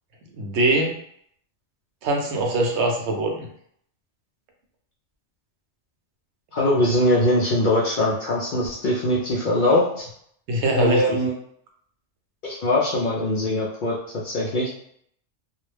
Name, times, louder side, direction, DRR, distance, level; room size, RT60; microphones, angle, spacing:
voice 1, 0.3-0.9 2.0-3.5 10.5-11.2, right 1 dB, 70° right, 1 dB, 0.9 m, -22 dB
voice 2, 6.5-10.0 10.7-11.3 12.4-14.0 14.2-14.7, left 1 dB, 60° left, -4 dB, 0.5 m, -22 dB
2.3 x 2.1 x 3.2 m, 0.67 s
omnidirectional pair, 1.2 m